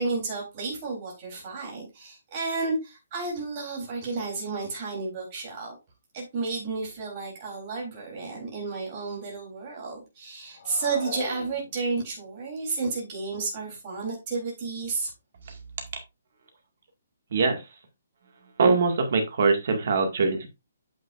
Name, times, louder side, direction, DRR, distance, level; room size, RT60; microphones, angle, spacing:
voice 1, 0.0-5.8 6.1-15.1, right 4 dB, 25° right, -2 dB, 3.7 m, -32 dB
sound 1, 10.5-12.2, left 3 dB, 30° left, 4.1 m, -39 dB
voice 2, 17.3-17.6 18.6-20.5, right 4 dB, 45° right, 5 dB, 2.0 m, -22 dB
8.9 x 7.3 x 2.6 m, 0.24 s
hypercardioid pair, 175°, 0 cm